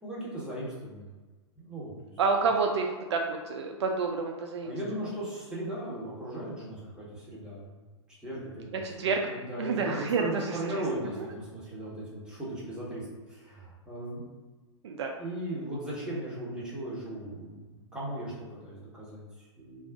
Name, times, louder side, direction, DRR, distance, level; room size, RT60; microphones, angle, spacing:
voice 1, 0.0-1.1 1.6-2.1 4.6-7.8 8.2-14.2 15.2-19.9, right 1 dB, 5° right, -8 dB, 1.1 m, -37 dB
voice 2, 2.2-4.7 8.8-9.2 9.6-10.2 14.8-15.1, right 4 dB, 65° right, 2 dB, 0.4 m, -28 dB
2.4 x 2.3 x 3.5 m, 1.3 s
hypercardioid pair, 110°, 15 cm